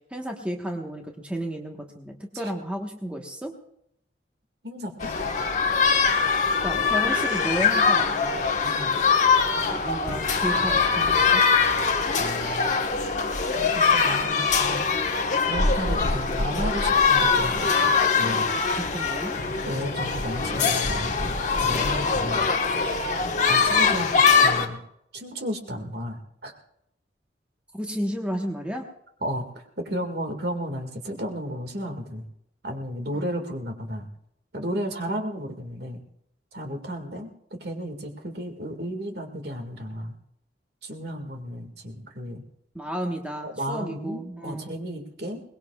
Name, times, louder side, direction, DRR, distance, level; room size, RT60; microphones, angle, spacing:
voice 1, 0.1-3.5 6.6-8.4 9.7-11.4 18.8-19.4 23.2-23.4 27.7-28.8 42.7-44.8, equal, 5° right, 1 dB, 1.2 m, -32 dB
voice 2, 4.6-5.1 8.6-9.0 12.2-12.8 13.5-14.8 15.5-18.5 19.7-22.5 23.5-24.8 25.1-26.5 29.2-29.4 29.8-32.3 32.6-34.1 34.5-36.0 36.5-40.1 40.8-42.4 43.4-45.4, equal, 60° right, 4 dB, 2.0 m, -33 dB
sound 1, 5.0-24.7, left 5 dB, 40° left, 1.3 m, -22 dB
22.5 x 20.0 x 2.4 m, 0.76 s
head